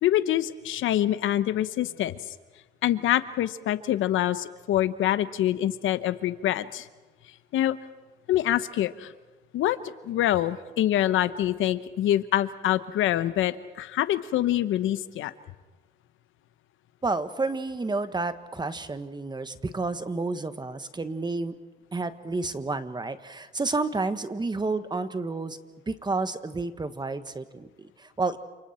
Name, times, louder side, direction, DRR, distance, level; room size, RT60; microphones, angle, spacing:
voice 1, 0.0-2.2 2.8-6.9 7.5-7.8 8.3-9.1 9.5-9.8 10.0-15.3, left 12 dB, 85° left, 13 dB, 0.9 m, -25 dB
voice 2, 17.0-21.5 21.9-25.6 25.9-28.4, right 3 dB, 20° right, 10 dB, 1.5 m, -30 dB
29.0 x 27.5 x 4.4 m, 1.3 s
cardioid pair, 90°, 20 cm